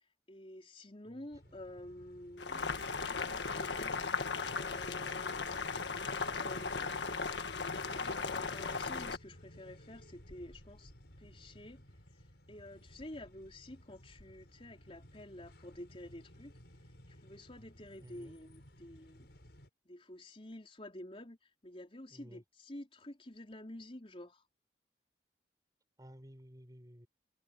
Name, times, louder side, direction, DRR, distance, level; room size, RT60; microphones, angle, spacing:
voice 1, 0.3-2.7 3.1-3.9 4.6-5.5 5.9-6.9 7.8-10.9 11.2-11.8 12.5-16.6 17.1-19.3 19.9-24.4, left 1 dB, 30° left, 4.0 m, -50 dB
voice 2, 1.0-1.6 18.0-18.4 22.1-22.4 26.0-27.1, equal, 20° right, 5.2 m, -55 dB
sound 1, 1.3-19.7, equal, 70° left, 5.5 m, -58 dB
Boiling, 2.4-9.2, left 4 dB, 85° left, 1.6 m, -37 dB
head